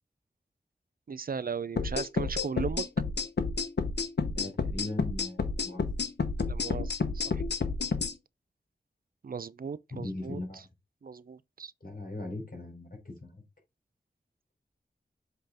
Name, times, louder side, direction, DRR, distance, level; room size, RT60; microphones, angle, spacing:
voice 1, 1.1-2.9 6.4-7.4 9.2-10.6 11.0-11.7, right 6 dB, 55° right, 0.5 m, -37 dB
sound 1, 1.8-8.1, left 4 dB, 75° left, 0.9 m, -30 dB
voice 2, 4.2-5.8 9.9-10.6 11.8-13.4, left 2 dB, 55° left, 4.0 m, -39 dB
7.8 x 3.8 x 3.5 m
wide cardioid pair, 70°, 17 cm